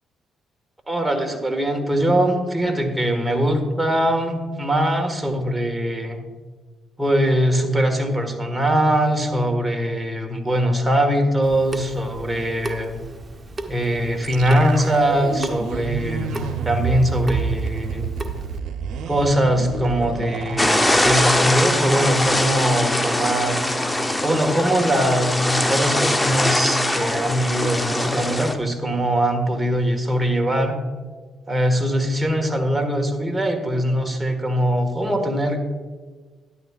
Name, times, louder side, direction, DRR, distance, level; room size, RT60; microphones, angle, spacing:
voice 1, 0.9-6.2 7.0-13.0 13.7-18.1 19.1-23.6 24.2-30.8 31.5-35.8, equal, 10° right, 3 dB, 1.5 m, -21 dB
Water tap faucet / Sink (filling or washing) / Drip, 11.4-18.6, right 2 dB, 30° right, 0.9 m, -35 dB
sound 1, 14.2-23.3 23.6-23.7 24.1-24.5, right 6 dB, 80° right, 0.8 m, -30 dB
sound 2, 20.6-28.5, left 1 dB, 15° left, 0.7 m, -22 dB
12.0 x 11.0 x 2.4 m, 1.4 s
cardioid pair, 90°, 0 cm